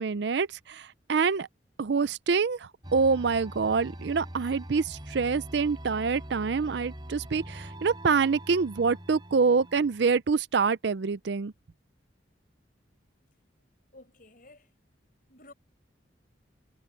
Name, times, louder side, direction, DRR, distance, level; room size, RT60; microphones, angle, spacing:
voice 1, 0.0-1.5 1.8-11.5, right 5 dB, 65° right, 0.5 m, -26 dB
sound 1, 2.8-10.2, right 1 dB, 25° right, 4.2 m, -43 dB
voice 2, 13.9-14.7 15.3-15.5, left 2 dB, 45° left, 6.1 m, -53 dB
head